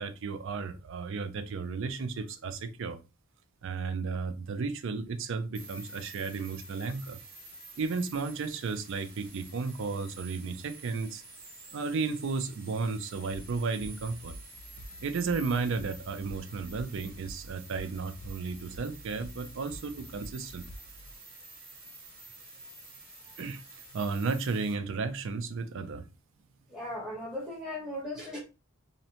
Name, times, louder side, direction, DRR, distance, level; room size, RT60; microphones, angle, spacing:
voice 1, 0.0-3.0 3.6-7.2 7.8-11.2 11.7-14.3 15.0-20.6 23.4-26.1, right 4 dB, 60° right, 0.4 m, -33 dB
sound 1, 5.5-24.7, right 2 dB, 45° right, 1.2 m, -50 dB
sound 2, 13.3-21.1, equal, 45° left, 0.4 m, -48 dB
voice 2, 26.7-28.4, left 1 dB, 5° right, 0.9 m, -37 dB
2.7 x 2.0 x 2.8 m
head